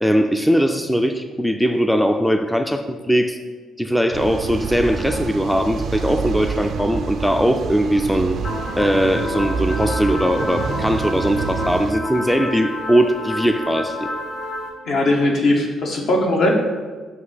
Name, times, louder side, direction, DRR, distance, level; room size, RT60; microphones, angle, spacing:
voice 1, 0.0-3.4 3.8-8.4 8.8-14.0, equal, 5° left, 6 dB, 0.4 m, -20 dB
sound 1, 4.1-11.9, right 6 dB, 65° right, 0.4 m, -28 dB
sound 2, 8.4-14.7, left 1 dB, 35° left, 1.9 m, -29 dB
voice 2, 14.8-16.5, left 1 dB, 65° left, 0 dB, 1.4 m, -19 dB
7.8 x 2.8 x 5.7 m, 1.4 s
cardioid pair, 90°, 0 cm